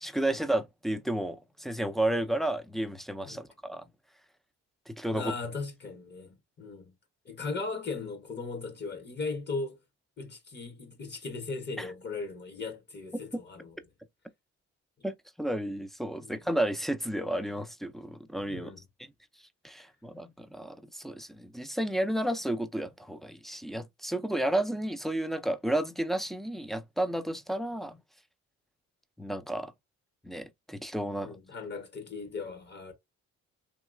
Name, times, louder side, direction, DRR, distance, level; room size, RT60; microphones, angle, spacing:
voice 1, 0.0-3.8 4.9-5.3 11.8-11.9 15.0-18.7 19.6-28.0 29.2-29.7 30.2-31.3, right 1 dB, ahead, 0.4 m, -32 dB
voice 2, 5.1-6.9 7.2-9.8 10.2-13.7 16.2-16.4 18.5-18.8 31.2-32.9, left 4 dB, 35° left, 1.1 m, -38 dB
2.9 x 2.8 x 2.5 m
cardioid pair, 90°, 30 cm